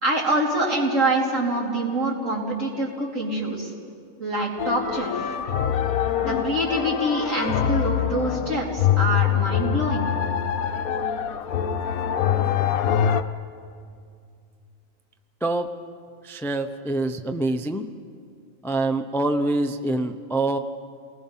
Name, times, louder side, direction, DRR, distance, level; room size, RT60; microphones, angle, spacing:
voice 1, 0.0-3.7 4.2-5.4 6.2-10.1, right 1 dB, 65° right, -3 dB, 3.9 m, -25 dB
sound 1, 4.6-13.2, left 9 dB, 90° left, 1.2 m, -24 dB
voice 2, 16.2-17.9 18.6-20.6, right 2 dB, 5° left, 6 dB, 0.4 m, -25 dB
29.0 x 19.5 x 5.6 m, 2.3 s
omnidirectional pair, 1.5 m